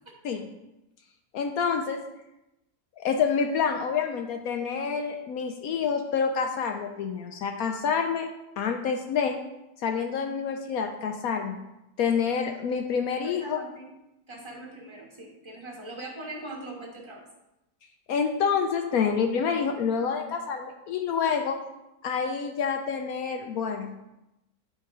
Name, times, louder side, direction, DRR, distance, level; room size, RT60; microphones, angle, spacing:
voice 1, 1.3-2.0 3.0-8.3 8.6-9.4 9.8-11.6 12.0-13.6 18.1-21.6 22.0-23.9, left 6 dB, 70° left, 5 dB, 0.9 m, -27 dB
voice 2, 13.2-13.9 14.3-17.2, right 2 dB, 15° right, -2 dB, 1.3 m, -41 dB
8.4 x 3.4 x 4.7 m, 0.93 s
omnidirectional pair, 1.9 m